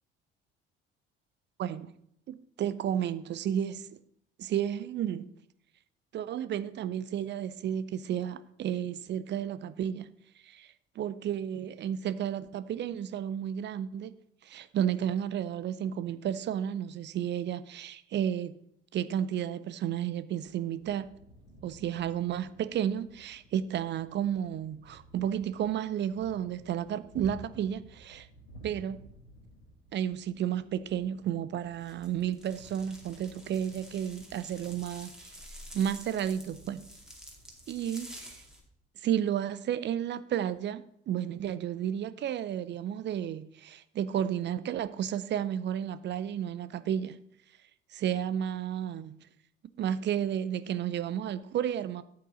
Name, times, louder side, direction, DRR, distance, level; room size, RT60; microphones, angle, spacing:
voice 1, 1.6-1.9 2.3-3.9 4.4-5.3 6.1-10.1 10.4-14.1 14.4-18.5 18.9-21.1 21.6-28.3 28.6-29.0 29.9-35.3 35.7-36.8 37.7-38.4 39.0-47.2 47.9-49.3 49.8-52.0, right 9 dB, 35° right, 0.6 m, -32 dB
sound 1, 20.7-38.7, right 1 dB, 80° left, 1.8 m, -55 dB
sound 2, 31.8-38.6, equal, ahead, 2.2 m, -49 dB
8.6 x 8.5 x 3.9 m
figure-of-eight pair, 50°, 30 cm